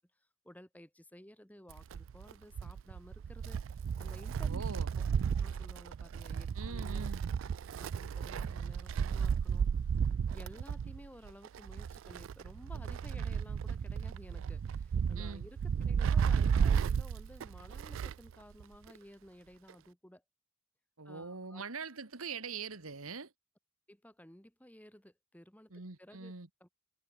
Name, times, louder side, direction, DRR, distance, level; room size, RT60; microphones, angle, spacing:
voice 1, 0.4-3.6 4.0-4.6 5.0-5.1 5.4-7.1 7.8-9.7 10.3-20.2 21.1-21.6 23.9-25.7 26.0-26.3 26.6-26.7, equal, 5° left, 2.2 m, -55 dB
Wind, 1.7-18.3 18.6-18.7 19.7-19.8, right 7 dB, 65° right, 0.3 m, -33 dB
voice 2, 4.4-4.9 6.6-7.2 15.1-15.4 21.0-23.3 25.7-26.5, right 4 dB, 85° right, 1.9 m, -43 dB
head